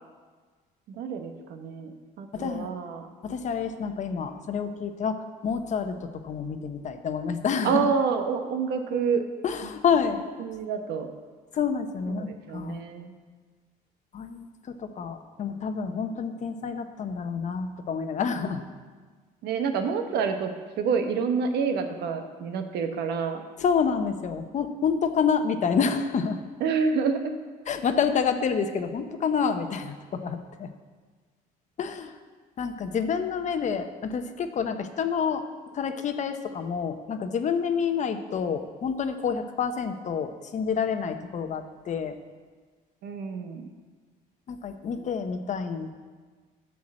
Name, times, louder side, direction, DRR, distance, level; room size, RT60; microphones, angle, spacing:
voice 1, 0.9-3.1 7.6-9.2 9.6-9.7 10.4-11.1 12.1-13.1 19.4-20.5 20.8-23.4 26.6-27.3 43.0-43.7, right 5 dB, 75° right, 6 dB, 1.1 m, -28 dB
voice 2, 2.3-2.7 3.2-7.9 9.4-10.2 11.5-12.8 14.1-18.6 23.6-26.4 27.7-30.7 31.8-32.1 32.6-35.4 35.7-42.2 44.5-45.9, left 6 dB, 45° left, 8 dB, 0.8 m, -28 dB
10.5 x 4.7 x 7.4 m, 1.4 s
cardioid pair, 110°, 17 cm